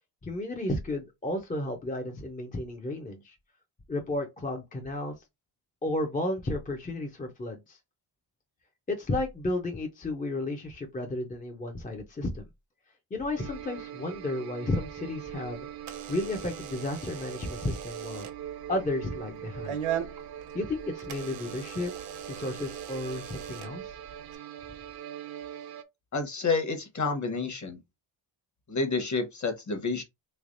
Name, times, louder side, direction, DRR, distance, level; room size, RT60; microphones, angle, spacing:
voice 1, 0.2-3.4 3.9-5.1 5.8-7.8 8.9-12.5 13.1-15.7 16.1-18.3 18.7-19.8 20.5-21.9 22.3-24.0, left 2 dB, 15° left, 0.5 m, -33 dB
sound 1, 13.4-25.8, right 10 dB, 50° right, 0.6 m, -42 dB
Door / Alarm, 15.1-24.4, right 9 dB, 80° right, 1.0 m, -41 dB
voice 2, 26.1-27.8 28.7-30.0, left 4 dB, 35° left, 1.0 m, -29 dB
3.5 x 3.3 x 2.5 m
wide cardioid pair, 145°, 49 cm